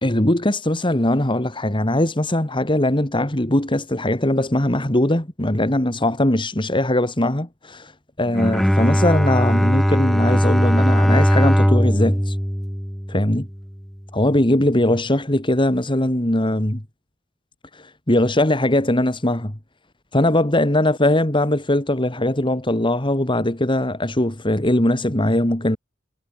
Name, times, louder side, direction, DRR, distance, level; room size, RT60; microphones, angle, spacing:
voice 1, 0.0-7.9 8.2-12.4 13.1-13.5 14.1-16.8 17.7-19.6 20.1-25.8, left 1 dB, 25° left, 2.3 m, -20 dB
Bowed string instrument, 8.3-13.6, equal, ahead, 2.5 m, -19 dB
head